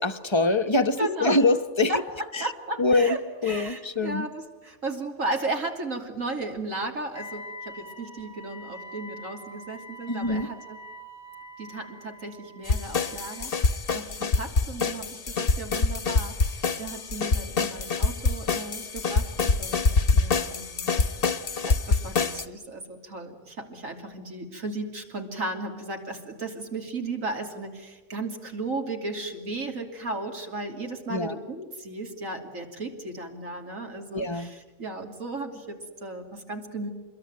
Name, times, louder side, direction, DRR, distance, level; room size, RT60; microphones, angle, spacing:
voice 1, 0.0-2.0 2.3-2.5 2.8-4.3 10.1-10.5 31.1-31.4 34.1-34.6, left 2 dB, 25° left, 8 dB, 1.0 m, -24 dB
voice 2, 1.0-1.4 1.9-2.0 2.4-3.2 3.4-10.8 11.6-21.1 21.6-36.9, right 2 dB, 70° right, 3 dB, 3.4 m, -35 dB
Wind instrument woodwind instrument, 7.1-13.6, equal, 5° left, 1.4 m, -44 dB
sound 1, 12.7-22.4, left 4 dB, 45° left, 1.2 m, -25 dB
27.0 x 22.0 x 9.6 m, 1.2 s
omnidirectional pair, 1.4 m